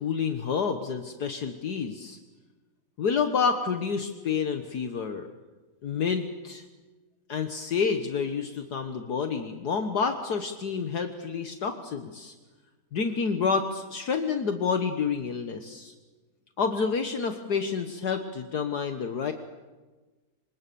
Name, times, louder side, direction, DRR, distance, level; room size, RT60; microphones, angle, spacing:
voice 1, 0.0-2.2 3.0-5.3 5.8-6.6 7.3-12.3 12.9-15.9 16.6-19.3, left 5 dB, 65° left, 7 dB, 1.9 m, -29 dB
27.0 x 26.0 x 7.0 m, 1.2 s
omnidirectional pair, 1.9 m